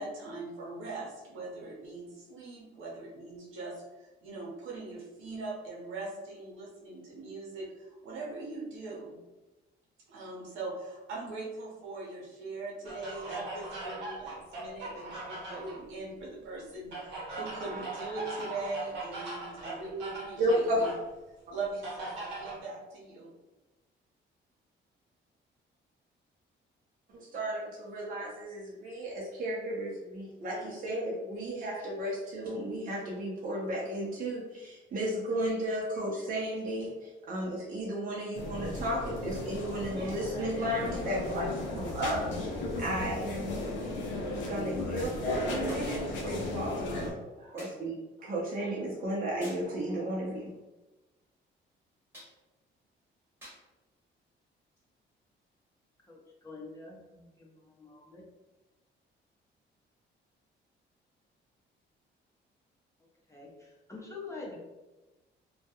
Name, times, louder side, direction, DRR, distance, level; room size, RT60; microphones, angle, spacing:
voice 1, 0.0-9.2 10.1-20.9 21.5-23.3, right 3 dB, 85° right, -4 dB, 0.9 m, -41 dB
sound 1, 12.9-15.8 16.9-21.1 21.8-22.6, right 2 dB, 65° right, 1.1 m, -40 dB
voice 2, 20.4-20.8 27.1-50.5, right 1 dB, 45° right, -5 dB, 0.7 m, -34 dB
sound 2, 38.3-47.1, left 2 dB, 70° left, 0.6 m, -35 dB
sound 3, 45.7-46.0 47.6-47.9 49.4-49.7 52.1-52.4 53.4-53.7 54.8-54.9, equal, 10° right, 1.0 m, -50 dB
voice 3, 56.4-57.5 57.8-58.2 63.3-63.5 63.9-64.6, left 3 dB, 15° left, -3 dB, 0.7 m, -44 dB
2.3 x 2.2 x 2.8 m, 1.1 s
cardioid pair, 90°, 20 cm